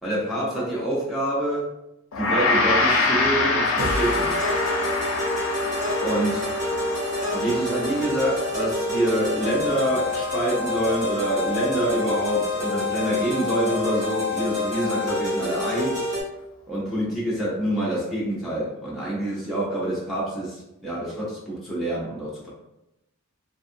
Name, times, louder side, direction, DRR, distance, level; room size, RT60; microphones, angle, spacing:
voice 1, 0.0-1.7 2.2-4.4 6.0-6.5 7.3-16.1 16.7-22.5, right 1 dB, ahead, -8 dB, 0.5 m, -26 dB
Gong, 2.1-11.5, left 3 dB, 70° left, 0.5 m, -26 dB
sound 1, 3.8-16.2, left 2 dB, 35° right, 0.9 m, -27 dB
2.5 x 2.4 x 2.5 m, 0.89 s
head